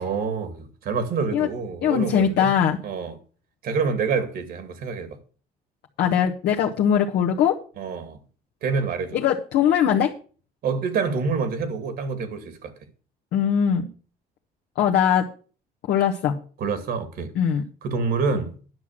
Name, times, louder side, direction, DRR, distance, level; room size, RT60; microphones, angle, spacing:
voice 1, 0.0-2.6 2.8-3.2 3.6-5.2 7.8-8.2 8.6-9.2 10.6-12.7 16.6-17.3 17.8-18.5, right 5 dB, 65° right, 2.3 m, -27 dB
voice 2, 1.8-2.8 6.0-7.6 9.1-10.1 13.3-13.9 14.8-15.2 15.9-16.3 17.3-17.6, left 8 dB, 75° left, 1.2 m, -21 dB
10.5 x 6.1 x 7.4 m
cardioid pair, 110°, 17 cm